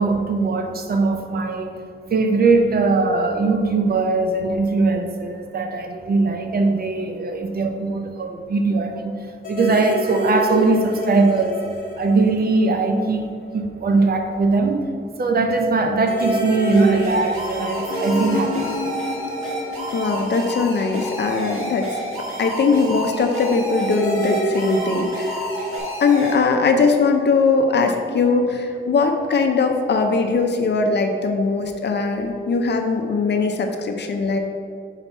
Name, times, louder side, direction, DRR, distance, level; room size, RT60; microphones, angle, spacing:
voice 1, 0.0-1.8 2.1-11.6 12.0-14.9 15.2-18.6 28.7-28.8, right 3 dB, 45° right, 5 dB, 0.5 m, -20 dB
sound 1, 9.4-13.2 13.5-13.6 16.0-21.4 23.8-25.8, equal, 40° left, 1.0 m, -28 dB
sound 2, 16.7-26.3, right 1 dB, 85° right, 1.5 m, -30 dB
voice 2, 19.9-25.4 26.0-34.4, left 4 dB, 55° left, 4 dB, 0.5 m, -20 dB
5.7 x 4.0 x 4.4 m, 2.2 s
wide cardioid pair, 180°, 21 cm